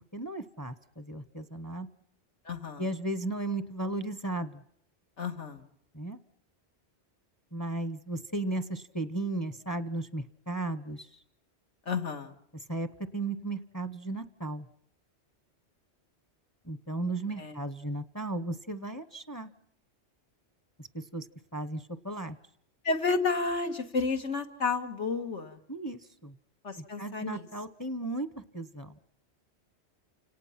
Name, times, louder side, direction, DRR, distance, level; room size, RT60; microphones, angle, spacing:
voice 1, 0.1-1.9 2.8-4.6 5.9-6.2 7.5-11.2 12.7-14.7 16.6-19.5 20.8-21.3 21.5-22.4 25.7-26.3 26.8-29.0, right 2 dB, 20° left, 12 dB, 0.7 m, -35 dB
voice 2, 2.5-2.9 5.2-5.6 11.9-12.4 17.4-17.6 22.8-25.6 26.6-27.5, left 4 dB, 85° left, 4 dB, 2.1 m, -31 dB
29.0 x 18.0 x 5.8 m, 0.69 s
omnidirectional pair, 1.2 m